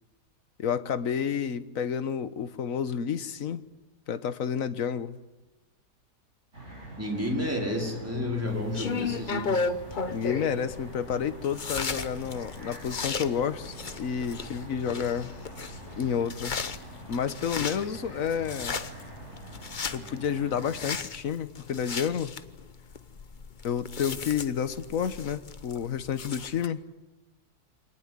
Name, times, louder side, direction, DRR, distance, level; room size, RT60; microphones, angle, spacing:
voice 1, 0.6-3.6 4.1-5.2 10.1-15.3 16.0-16.6 17.1-18.8 19.9-22.3 23.6-26.8, left 7 dB, 55° left, 12 dB, 1.4 m, -30 dB
sound 1, 6.5-20.9, right 1 dB, 40° right, 8.5 m, -45 dB
voice 2, 7.0-9.6, left 1 dB, 10° right, 0 dB, 5.0 m, -31 dB
sound 2, 8.5-26.7, left 4 dB, 35° left, 0.9 m, -36 dB
25.5 x 19.5 x 9.7 m, 1.1 s
omnidirectional pair, 1.8 m